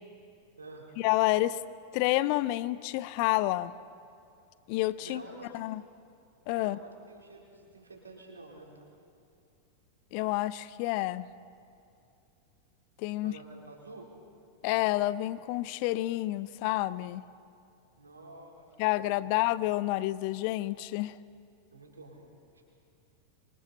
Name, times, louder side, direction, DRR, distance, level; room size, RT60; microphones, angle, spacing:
voice 1, 1.0-1.6 1.9-3.7 4.7-5.2 5.5-5.8 6.5-6.8 10.1-11.3 13.0-13.3 14.6-17.2 18.8-21.2, left 17 dB, 45° left, 17 dB, 0.6 m, -29 dB
voice 2, 5.0-5.6 6.6-8.7 13.2-14.1 18.0-19.3 21.7-22.2, right 2 dB, 75° right, -1 dB, 3.7 m, -49 dB
27.0 x 24.0 x 4.2 m, 2.6 s
figure-of-eight pair, 90°, 0 cm